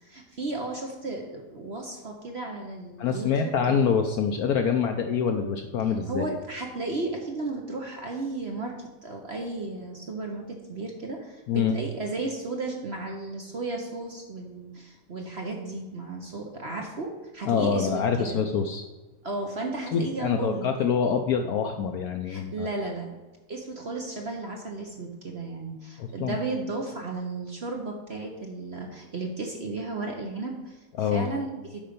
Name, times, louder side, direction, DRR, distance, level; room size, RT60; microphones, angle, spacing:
voice 1, 0.0-3.8 6.1-8.8 9.0-18.4 19.2-21.0 22.2-23.2 23.5-30.8 31.1-31.8, right 2 dB, 45° right, 1 dB, 0.9 m, -34 dB
voice 2, 3.0-6.2 11.5-11.7 17.4-18.8 19.9-22.7 26.0-26.4 31.0-31.3, left 6 dB, 70° left, 5 dB, 0.9 m, -25 dB
8.6 x 5.5 x 5.2 m, 1.2 s
omnidirectional pair, 2.0 m